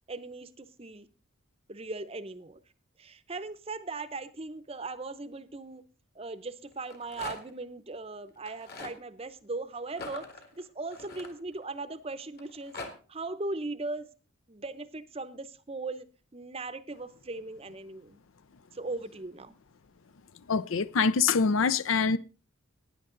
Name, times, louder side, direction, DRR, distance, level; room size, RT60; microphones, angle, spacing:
voice 1, 0.1-1.1 1.7-2.6 3.0-5.8 6.1-10.3 10.5-12.7 13.1-14.1 14.5-16.1 16.3-18.2 18.7-19.6, right 3 dB, 25° right, 0.7 m, -38 dB
Rattle, 6.7-7.6 8.4-9.0 9.9-11.8 12.4-12.9, left 3 dB, 45° left, 1.9 m, -43 dB
voice 2, 20.5-22.2, left 5 dB, 65° left, 0.5 m, -25 dB
15.5 x 9.7 x 3.8 m
head